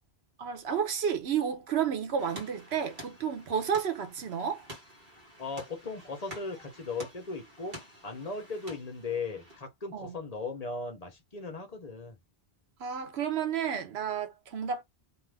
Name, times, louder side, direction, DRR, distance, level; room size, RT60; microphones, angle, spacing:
voice 1, 0.4-4.7 9.9-10.1 12.8-14.8, right 7 dB, 85° right, 1.1 m, -31 dB
sound 1, 2.2-9.6, equal, 55° right, 1.3 m, -49 dB
voice 2, 5.4-7.8 8.0-12.2, left 4 dB, 40° left, 0.8 m, -37 dB
2.6 x 2.5 x 3.3 m
omnidirectional pair, 1.0 m